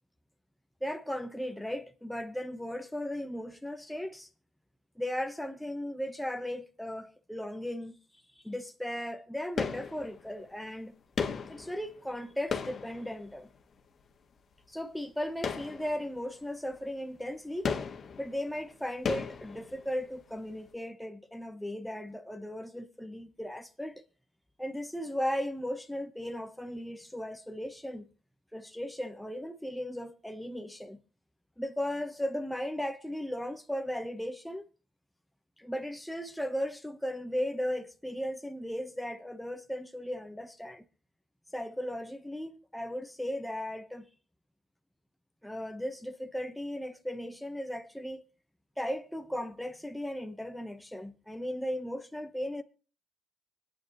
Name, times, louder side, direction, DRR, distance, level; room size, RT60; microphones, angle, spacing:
voice 1, 0.8-4.3 5.0-7.9 8.3-10.9 11.5-13.5 14.7-17.7 18.2-24.0 24.6-28.1 28.5-31.0 31.6-34.7 35.6-40.8 41.5-44.0 45.4-48.2 48.8-52.6, equal, 5° left, 1.1 m, -36 dB
sound 1, 9.6-10.5 11.2-13.7 15.4-16.4 16.7-16.8 17.6-20.2 20.5-20.6, left 6 dB, 50° left, 1.7 m, -36 dB
24.5 x 9.3 x 3.1 m
cardioid pair, 90°, 0 cm